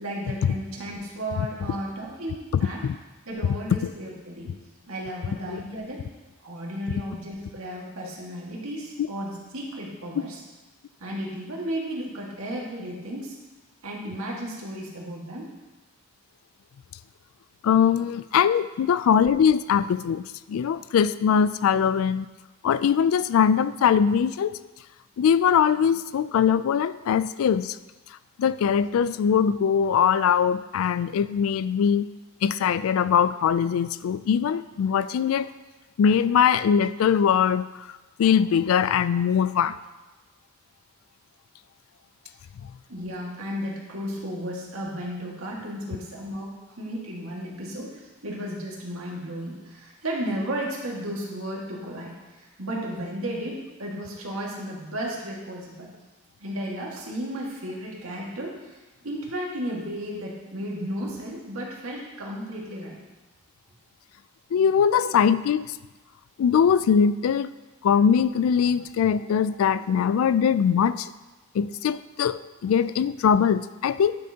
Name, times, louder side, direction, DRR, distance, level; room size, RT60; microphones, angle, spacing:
voice 1, 0.0-2.8 3.3-4.5 4.9-6.0 6.4-10.4 11.0-13.4 13.8-15.5 42.9-55.9 56.4-58.8 59.0-63.0 65.0-65.3, equal, 90° right, -3 dB, 1.8 m, -34 dB
voice 2, 17.6-22.3 22.6-24.6 25.2-27.8 28.4-32.1 32.4-35.5 36.0-37.7 38.2-39.7 64.5-65.6 66.4-67.5 67.8-71.1 71.5-74.1, left 7 dB, 80° left, 15 dB, 0.3 m, -21 dB
10.5 x 6.3 x 2.8 m, 1.1 s
head